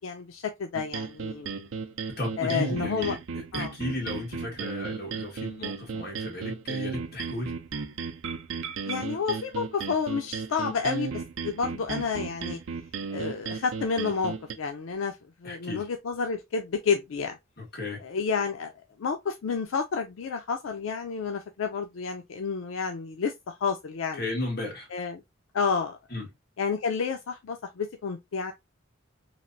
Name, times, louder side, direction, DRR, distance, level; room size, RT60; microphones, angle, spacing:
voice 1, 0.0-1.5 2.4-3.2 3.5-3.7 8.9-12.6 13.1-15.2 15.4-17.4 18.0-18.7 19.0-24.2 24.9-25.2 25.5-26.0 26.6-28.5, left 5 dB, 85° left, 0.4 m, -30 dB
sound 1, 0.7-14.5, right 5 dB, 85° right, 0.5 m, -35 dB
voice 2, 2.2-7.5 15.4-15.9 17.6-18.0 24.1-24.9 26.1-26.3, left 2 dB, 55° left, 1.7 m, -34 dB
3.3 x 2.4 x 2.5 m
head